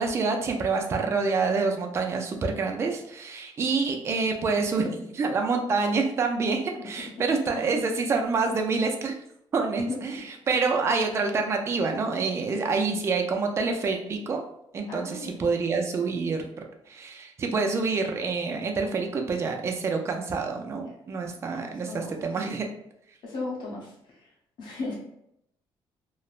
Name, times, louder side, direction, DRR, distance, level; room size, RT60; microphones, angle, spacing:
voice 1, 0.0-9.2 9.5-14.4 14.7-16.4 16.9-22.7, right 4 dB, 30° right, 3 dB, 0.3 m, -27 dB
voice 2, 14.9-15.3 20.9-21.0 21.7-22.6 23.2-23.9 24.6-25.0, left 3 dB, 55° left, -4 dB, 0.8 m, -36 dB
3.0 x 2.0 x 2.3 m, 0.75 s
cardioid pair, 175°, 9 cm